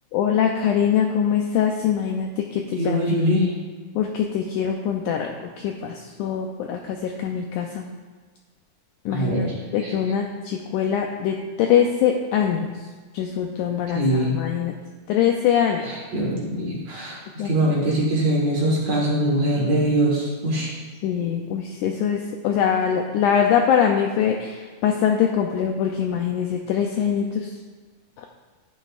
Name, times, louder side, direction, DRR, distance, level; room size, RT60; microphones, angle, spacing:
voice 1, 0.1-3.2 4.0-7.8 9.1-9.5 9.7-12.7 13.1-14.7 15.1-15.8 17.4-17.5 21.0-27.5 28.2-28.3, left 8 dB, 85° left, 2 dB, 1.8 m, -23 dB
voice 2, 2.8-3.5 9.1-9.6 9.8-9.9 13.9-14.4 15.8-20.7, right 1 dB, 50° right, -4 dB, 2.5 m, -22 dB
11.5 x 9.1 x 2.5 m, 1.4 s
omnidirectional pair, 4.2 m